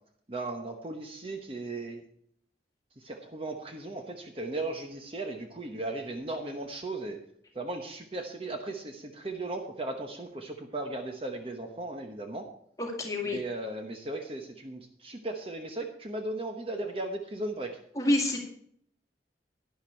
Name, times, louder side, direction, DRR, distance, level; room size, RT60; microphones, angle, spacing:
voice 1, 0.3-2.0 3.0-7.2 7.5-12.5 13.3-17.8, right 2 dB, 30° right, 4 dB, 1.0 m, -36 dB
voice 2, 12.8-13.4 18.0-18.4, left 1 dB, 20° left, 1 dB, 2.1 m, -27 dB
11.5 x 10.5 x 4.5 m, 0.67 s
head